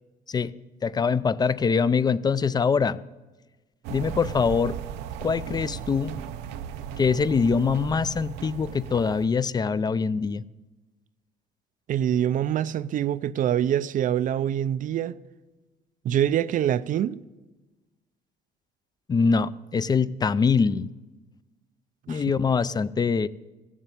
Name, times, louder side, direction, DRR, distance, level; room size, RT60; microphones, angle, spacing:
voice 1, 0.8-3.0 3.9-4.8 5.2-6.1 7.0-10.4 19.1-20.9 22.1-23.3, left 5 dB, 25° left, 0.4 m, -23 dB
sound 1, 3.8-9.3, right 9 dB, 90° right, 0.7 m, -36 dB
voice 2, 11.9-15.2 16.0-17.2 22.1-22.2, right 10 dB, 50° right, 0.4 m, -25 dB
15.0 x 7.3 x 8.3 m
cardioid pair, 110°, 17 cm